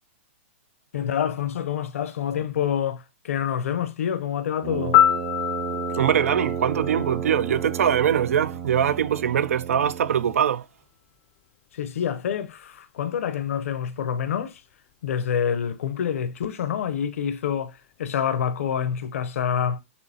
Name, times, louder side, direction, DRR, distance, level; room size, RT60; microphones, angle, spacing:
voice 1, 0.9-5.0 11.7-14.6 15.0-19.8, left 8 dB, 75° left, 0.7 m, -27 dB
Brass instrument, 4.6-10.5, right 7 dB, 35° right, 0.6 m, -32 dB
Piano, 4.9-7.9 16.0-16.2, left 12 dB, 35° left, 0.4 m, -24 dB
voice 2, 5.9-10.7, right 9 dB, 80° right, 0.3 m, -22 dB
6.3 x 2.9 x 2.8 m
hypercardioid pair, 145°, 8 cm